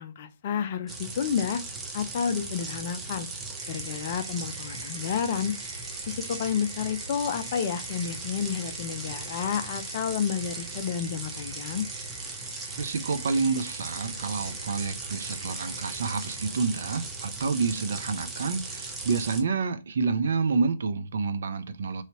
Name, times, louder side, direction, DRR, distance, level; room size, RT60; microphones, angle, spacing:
voice 1, 0.0-1.6 1.9-3.3 3.7-5.5 6.1-11.9, left 7 dB, 40° left, 0.5 m, -30 dB
sound 1, 0.9-19.4, right 3 dB, 10° right, 0.6 m, -38 dB
sound 2, 3.6-16.5, right 2 dB, 85° right, 1.0 m, -51 dB
voice 2, 12.8-22.0, right 4 dB, 60° right, 0.5 m, -28 dB
3.1 x 2.8 x 2.8 m
figure-of-eight pair, 135°, 0 cm